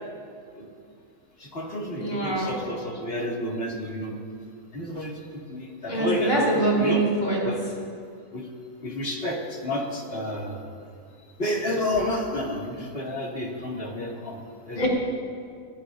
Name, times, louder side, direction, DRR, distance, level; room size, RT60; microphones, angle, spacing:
voice 1, 1.4-4.2 4.7-5.2 5.5-7.0 7.4-7.6 8.3-8.5 8.8-10.6 11.4-14.4 14.7-14.8, left 1 dB, 45° left, -2 dB, 2.3 m, -30 dB
voice 2, 2.0-2.5 5.9-7.4 14.7-14.9, right 2 dB, 85° left, -4 dB, 4.4 m, -24 dB
28.5 x 14.5 x 2.6 m, 2.2 s
omnidirectional pair, 1.4 m